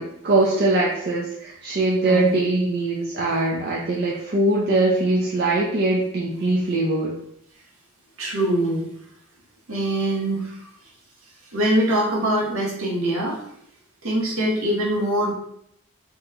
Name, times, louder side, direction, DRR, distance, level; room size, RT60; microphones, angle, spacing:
voice 1, 0.0-7.2, right 2 dB, 50° right, -4 dB, 0.4 m, -22 dB
voice 2, 8.2-8.9 9.7-10.7 11.5-13.4 14.0-15.3, right 1 dB, 75° right, -3 dB, 0.9 m, -23 dB
3.0 x 2.1 x 3.5 m, 0.72 s
head